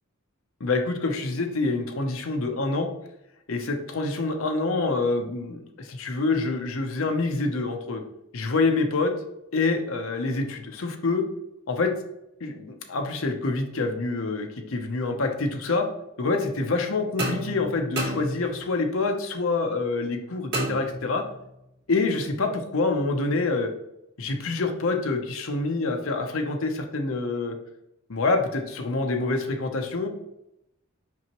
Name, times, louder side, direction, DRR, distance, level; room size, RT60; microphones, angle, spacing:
voice 1, 0.6-2.9 3.5-8.0 8.3-9.1 9.5-11.2 11.7-11.9 12.4-15.9 16.2-21.2 21.9-23.7 24.2-27.5 28.1-30.1, left 3 dB, 65° left, 4 dB, 0.7 m, -26 dB
sound 1, 17.2-18.8 20.5-21.5, right 1 dB, 55° right, 2.2 m, -31 dB
5.9 x 5.4 x 3.0 m, 0.84 s
head